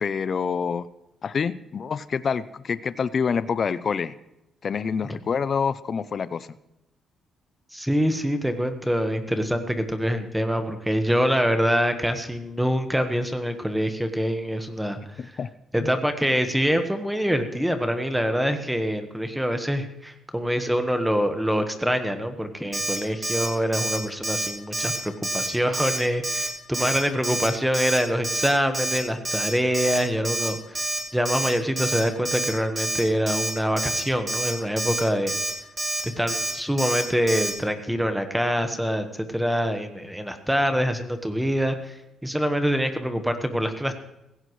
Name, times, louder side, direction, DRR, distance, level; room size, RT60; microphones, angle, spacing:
voice 1, 0.0-0.9 1.2-4.1 4.6-6.5 15.2-15.5 15.8-15.9, left 6 dB, 45° left, 15 dB, 0.5 m, -27 dB
voice 2, 7.7-15.4 15.7-35.3 36.0-43.9, equal, 5° right, 7 dB, 1.3 m, -25 dB
Alarm, 22.7-23.0 23.2-23.5 23.7-24.0 24.2-24.5 24.7-25.0 25.2-25.5 25.7-26.0 26.2-26.5 26.7-27.0 27.2-27.5 27.7-28.0 28.2-28.5 28.7-29.0 29.2-29.5 29.7-30.0 30.2-30.5 30.8-31.0 31.3-31.5 31.8-32.0 32.3-32.5 32.8-33.0 33.3-33.5 33.8-34.0 34.3-34.5 34.8-35.0 35.3-35.5 35.8-36.0 36.3-36.5 36.8-37.0 37.3-37.5, right 2 dB, 25° right, 4.1 m, -27 dB
16.0 x 16.0 x 3.2 m, 0.88 s
cardioid pair, 90°, 0 cm